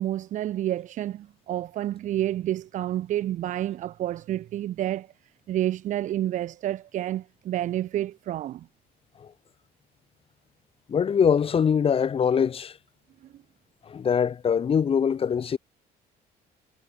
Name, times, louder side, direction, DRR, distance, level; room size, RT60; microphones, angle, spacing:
voice 1, 0.0-5.1 5.5-8.7, right 13 dB, 50° right, 0.4 m, -29 dB
voice 2, 10.9-12.8 13.9-15.6, left 7 dB, 35° left, 0.9 m, -23 dB
cardioid pair, 110°, 17 cm